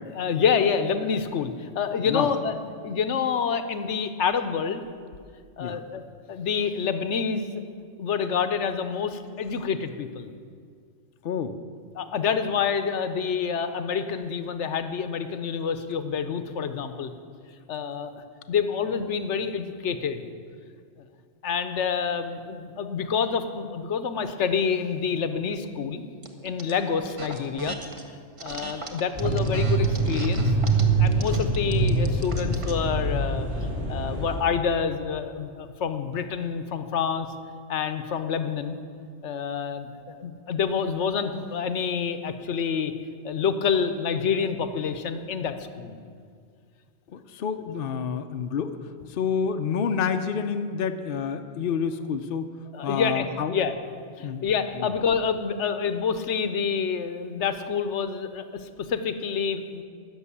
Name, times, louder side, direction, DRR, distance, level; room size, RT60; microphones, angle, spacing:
voice 1, 0.1-2.6 2.8-4.8 5.6-6.0 6.3-7.6 8.0-10.3 11.9-17.1 17.7-20.2 21.4-26.0 26.4-27.8 28.4-30.5 31.0-33.5 33.9-37.3 37.7-38.8 39.2-42.9 43.2-46.0 47.6-47.7 52.7-53.7 54.2-59.8, left 6 dB, 70° left, 10 dB, 1.1 m, -27 dB
voice 2, 11.2-11.5 47.1-48.7 49.0-52.5 52.8-53.6 54.2-54.5 54.8-54.9, left 6 dB, 55° left, 7 dB, 0.7 m, -28 dB
sound 1, 26.2-26.7 27.1-28.0 28.4-32.8, right 3 dB, 30° right, 1.0 m, -38 dB
sound 2, 29.1-34.4, right 3 dB, 55° right, 2.8 m, -24 dB
12.5 x 6.5 x 9.8 m, 2.1 s
omnidirectional pair, 1.3 m